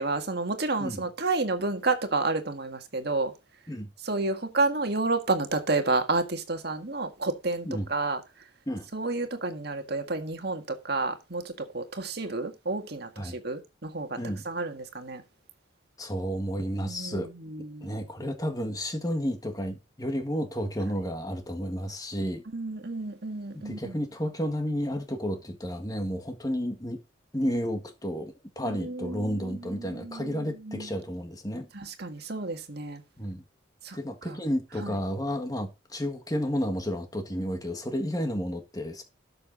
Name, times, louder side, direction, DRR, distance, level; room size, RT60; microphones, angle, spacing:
voice 1, 0.0-3.3 4.0-8.2 8.9-14.2 14.5-15.2 16.8-17.9 22.5-23.9 28.8-30.9 31.7-33.0 33.8-34.0 34.3-34.4 34.8-34.9, right 3 dB, 55° right, 1.8 m, -30 dB
voice 2, 16.0-17.3 17.8-22.4 23.5-27.0 27.3-31.7 33.2-33.4 33.9-39.0, equal, 20° left, 1.6 m, -31 dB
13.0 x 6.7 x 4.0 m
head